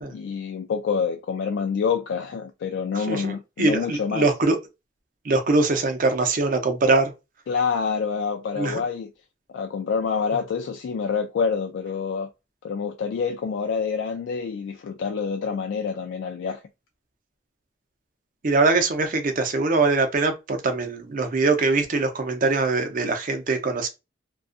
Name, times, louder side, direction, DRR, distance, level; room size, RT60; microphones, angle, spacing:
voice 1, 0.1-4.3 7.5-9.1 9.5-12.3 12.6-16.6, left 6 dB, 75° left, 0.3 m, -27 dB
voice 2, 3.1-4.6 5.3-7.1 8.6-8.8 18.4-23.9, right 3 dB, 45° right, 0.5 m, -22 dB
2.5 x 2.3 x 2.4 m
head